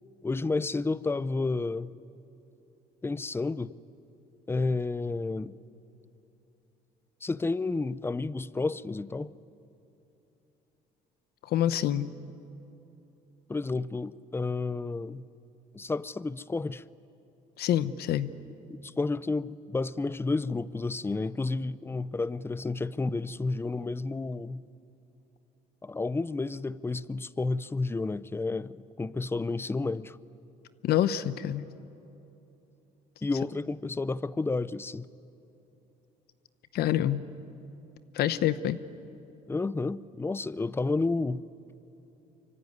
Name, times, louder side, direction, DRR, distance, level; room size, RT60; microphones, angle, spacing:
voice 1, 0.2-2.0 3.0-3.7 4.5-5.6 7.2-9.3 13.5-15.2 15.7-16.8 18.8-24.6 25.8-30.2 33.2-35.1 39.5-41.4, left 3 dB, 15° left, 0.6 m, -31 dB
voice 2, 11.5-12.1 17.6-18.3 30.8-31.7 36.7-37.2 38.1-38.8, left 11 dB, 70° left, 0.8 m, -26 dB
25.0 x 24.5 x 9.6 m
cardioid pair, 110°, 17 cm